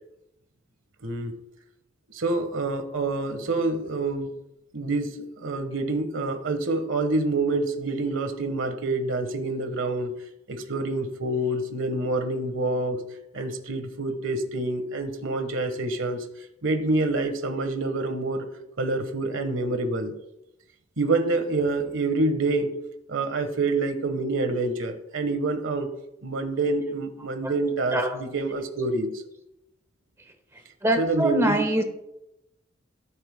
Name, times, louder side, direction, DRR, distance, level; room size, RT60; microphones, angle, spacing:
voice 1, 1.0-1.3 2.1-4.3 4.7-10.1 10.5-13.0 13.3-16.3 16.6-18.5 18.8-20.1 21.0-22.8 23.1-25.9 26.2-29.2 31.0-31.7, right 2 dB, 80° right, 8 dB, 1.3 m, -27 dB
voice 2, 30.8-31.8, right 1 dB, 15° right, 5 dB, 1.3 m, -23 dB
18.0 x 8.7 x 2.2 m, 0.87 s
head